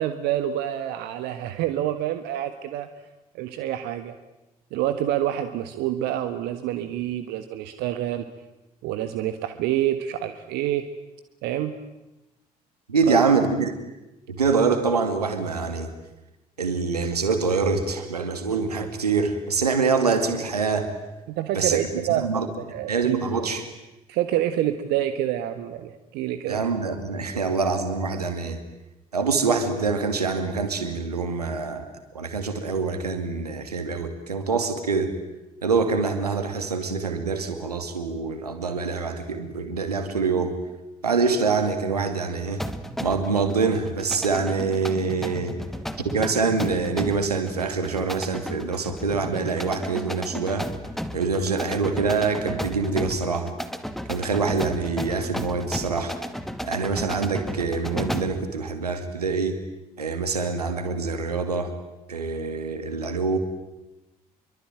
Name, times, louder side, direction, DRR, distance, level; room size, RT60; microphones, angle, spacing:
voice 1, 0.0-2.9 3.3-4.1 4.7-8.2 8.8-10.9 11.4-11.7 13.1-13.2 21.4-22.4 22.7-23.3 24.1-26.6, right 12 dB, 60° right, 10 dB, 1.5 m, -27 dB
voice 2, 12.9-13.7 14.3-15.9 16.6-20.9 21.5-23.6 26.5-28.6 29.1-31.9 32.1-35.1 35.6-40.6 41.0-42.6 43.0-45.6 46.0-50.7 51.1-53.5 54.1-56.2 56.6-59.6 60.0-61.7 62.1-63.4, right 4 dB, 80° right, 8 dB, 2.5 m, -25 dB
sound 1, 42.6-58.4, equal, ahead, 2.1 m, -34 dB
27.5 x 23.5 x 9.1 m, 0.98 s
figure-of-eight pair, 50°, 19 cm